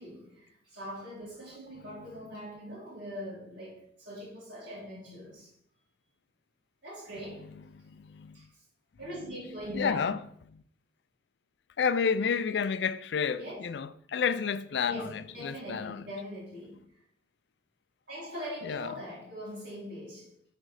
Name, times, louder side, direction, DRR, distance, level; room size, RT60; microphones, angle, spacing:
voice 1, 0.0-5.5 6.8-7.5 8.3-8.5 9.0-10.1 13.4-13.6 14.9-16.9 18.1-20.3, equal, 70° right, 2.8 m, -42 dB
voice 2, 7.7-8.4 9.7-10.2 10.5-10.6 11.8-16.0 18.6-18.9, left 6 dB, 70° left, 0.4 m, -30 dB
6.4 x 4.3 x 4.8 m
head